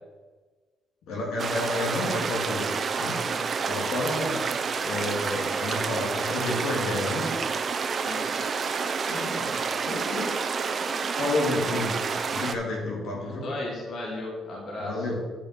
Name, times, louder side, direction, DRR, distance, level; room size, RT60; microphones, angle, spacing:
voice 1, 1.1-2.7 3.0-3.2 3.7-4.4 4.8-7.4 9.1-9.5 9.8-10.3 11.2-12.0 12.3-13.5 14.8-15.2, left 2 dB, 85° left, -2 dB, 2.4 m, -30 dB
sound 1, 1.4-12.6, right 5 dB, 45° right, 0.7 m, -29 dB
voice 2, 8.0-8.5 13.2-15.0, left 2 dB, 60° left, -2 dB, 2.2 m, -35 dB
9.0 x 5.1 x 5.9 m, 1.4 s
cardioid pair, 90°, 0 cm